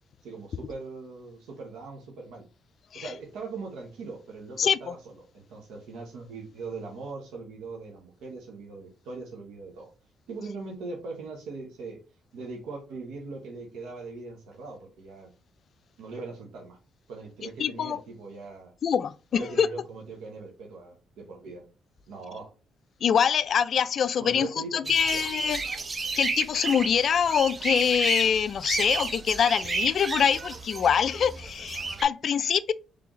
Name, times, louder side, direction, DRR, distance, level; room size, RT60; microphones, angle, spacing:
voice 1, 0.2-2.4 2.9-9.9 10.3-12.0 12.3-15.3 16.0-16.8 17.1-18.7 19.3-21.7 22.1-22.5 24.2-25.2, right 3 dB, 85° right, 1.0 m, -40 dB
voice 2, 17.6-18.0 18.8-19.7 23.0-25.6 26.2-32.7, left 7 dB, 55° left, 0.3 m, -24 dB
sound 1, 24.8-32.0, right 4 dB, 35° right, 0.6 m, -32 dB
3.9 x 3.3 x 3.0 m
cardioid pair, 90°, 0 cm